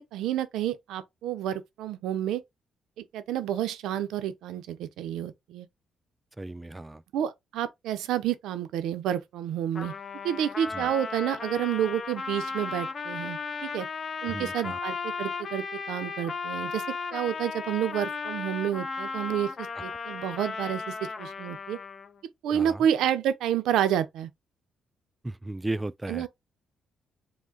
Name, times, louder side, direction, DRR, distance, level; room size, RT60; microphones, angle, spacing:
voice 1, 0.0-2.4 3.0-5.7 7.1-9.9 10.2-13.9 14.2-16.8 17.1-21.8 22.4-24.3 26.1-26.3, right 10 dB, 85° right, 0.6 m, -29 dB
voice 2, 6.4-7.0 10.7-10.9 14.3-14.8 22.5-22.9 25.2-26.3, right 2 dB, 15° right, 0.3 m, -35 dB
Trumpet, 9.7-22.2, left 4 dB, 40° left, 0.6 m, -35 dB
4.9 x 2.2 x 3.8 m
cardioid pair, 90°, 0 cm